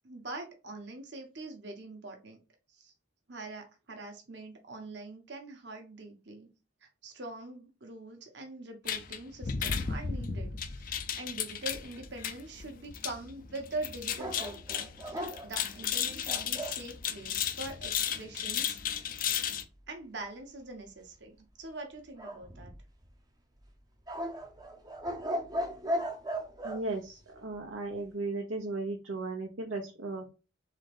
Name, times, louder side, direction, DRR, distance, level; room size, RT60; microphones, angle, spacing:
voice 1, 0.0-2.4 2.7-2.9 3.3-6.5 6.8-19.1 19.9-22.7, right 2 dB, 60° right, 3 dB, 1.2 m, -43 dB
sound 1, 8.9-19.6, left 8 dB, 45° left, 0.4 m, -35 dB
sound 2, 14.2-16.8 22.2-23.1 24.1-26.8, equal, 20° right, 0.6 m, -36 dB
voice 2, 26.6-30.2, right 2 dB, 85° right, 1 dB, 1.0 m, -36 dB
3.9 x 3.4 x 3.4 m, 0.31 s
head